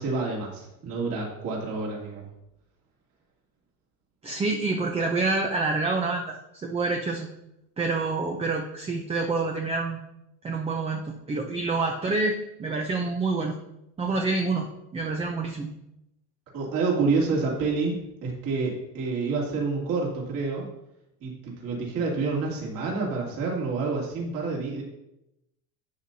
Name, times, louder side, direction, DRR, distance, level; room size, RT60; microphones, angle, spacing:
voice 1, 0.0-2.2 16.5-20.6 21.2-24.8, right 4 dB, 50° right, -3 dB, 2.8 m, -28 dB
voice 2, 4.2-6.4 6.6-7.3 7.8-10.0 10.4-13.6 14.0-14.7 14.9-15.7, right 3 dB, 15° right, 2 dB, 0.6 m, -27 dB
11.5 x 7.5 x 2.8 m, 0.87 s
supercardioid pair, 135°, 44 cm